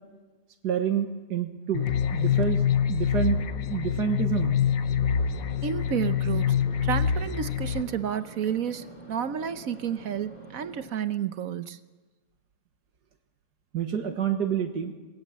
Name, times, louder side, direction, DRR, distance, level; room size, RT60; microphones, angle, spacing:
voice 1, 0.6-4.6 13.7-14.9, right 8 dB, 85° right, 5 dB, 2.0 m, -28 dB
sound 1, 1.7-7.8, left 8 dB, 60° left, 1.3 m, -25 dB
sound 2, 3.0-10.9, right 8 dB, 40° right, 1.8 m, -49 dB
Subway metro underground, 4.8-10.9, left 1 dB, 25° left, 4.2 m, -50 dB
voice 2, 5.6-6.6 6.8-11.8, right 8 dB, 60° right, 12 dB, 1.3 m, -31 dB
26.5 x 20.0 x 7.4 m, 1.3 s
omnidirectional pair, 1.7 m